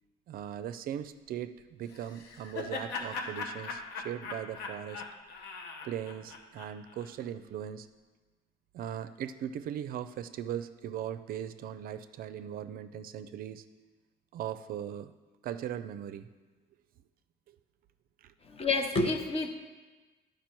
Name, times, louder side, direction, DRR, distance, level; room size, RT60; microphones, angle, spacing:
voice 1, 0.3-5.0 5.8-7.9 8.7-13.6 14.3-15.1 15.4-16.3 17.5-17.6 18.2-18.3, right 10 dB, 60° right, 11 dB, 0.4 m, -39 dB
Laughter, 1.9-7.1, left 4 dB, 85° left, 0.9 m, -40 dB
voice 2, 18.5-19.5, left 3 dB, 35° left, 7 dB, 0.8 m, -29 dB
10.5 x 4.9 x 4.5 m, 1.3 s
cardioid pair, 110°, 17 cm